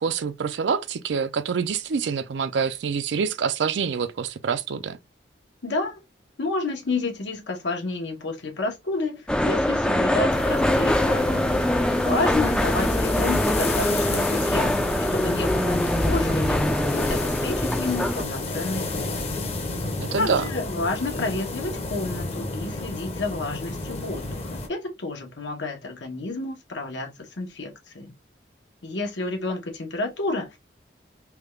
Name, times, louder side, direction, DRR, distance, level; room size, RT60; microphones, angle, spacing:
voice 1, 0.0-5.0 20.0-20.4, right 6 dB, 80° right, 0.4 m, -26 dB
voice 2, 5.6-6.0 6.4-11.6 11.9-14.8 15.1-19.2 20.1-28.1 28.8-30.6, left 2 dB, 85° left, 1.0 m, -30 dB
sound 1, 9.3-18.2, left 1 dB, 5° left, 0.3 m, -23 dB
sound 2, 10.3-24.7, left 2 dB, 35° left, 0.7 m, -31 dB
3.4 x 2.3 x 3.1 m
head